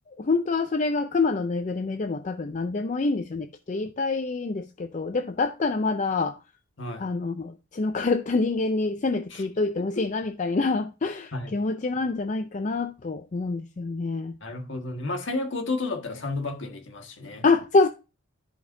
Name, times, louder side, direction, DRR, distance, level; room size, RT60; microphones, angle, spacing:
voice 1, 0.2-6.4 7.0-14.4 17.4-17.9, left 3 dB, 35° left, 0.4 m, -26 dB
voice 2, 6.8-7.1 9.3-9.4 9.8-10.1 11.3-11.6 14.4-17.5, left 2 dB, 60° left, 1.5 m, -32 dB
13.5 x 5.2 x 2.6 m
head